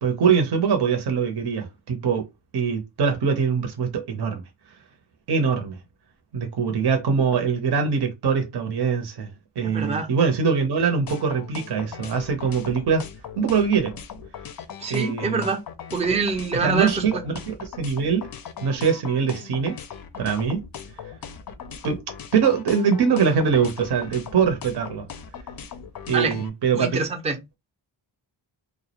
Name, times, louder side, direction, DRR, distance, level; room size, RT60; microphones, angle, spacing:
voice 1, 0.0-2.3 2.5-4.4 5.3-5.8 6.3-9.3 9.6-13.1 13.4-13.9 14.9-15.4 16.6-18.3 18.6-19.8 20.2-20.6 21.8-22.0 22.3-25.0 26.1-27.1, right 6 dB, 55° right, 0.7 m, -23 dB
voice 2, 9.6-10.1 14.8-15.6 15.9-17.0 26.1-26.3 26.7-27.4, right 4 dB, 15° right, 0.4 m, -25 dB
sound 1, 11.1-26.5, left 7 dB, 50° left, 0.4 m, -39 dB
2.3 x 2.0 x 2.8 m
cardioid pair, 75°, 48 cm